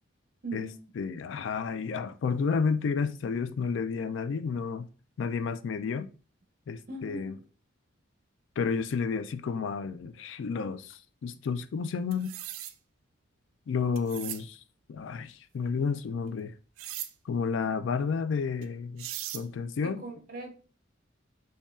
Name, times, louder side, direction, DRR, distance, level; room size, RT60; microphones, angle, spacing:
voice 1, 0.4-0.8 6.9-7.3 19.8-20.6, right 2 dB, 45° right, 0.6 m, -40 dB
voice 2, 1.0-4.9 5.2-6.1 6.7-7.4 8.6-12.3 13.7-14.6 14.9-16.5 17.3-19.1 19.3-20.0, left 5 dB, 65° left, 0.3 m, -31 dB
sound 1, 12.1-12.7 14.0-14.4 16.8-17.1 18.6-18.7 19.0-19.4, right 12 dB, 90° right, 0.3 m, -38 dB
5.2 x 2.3 x 2.4 m
head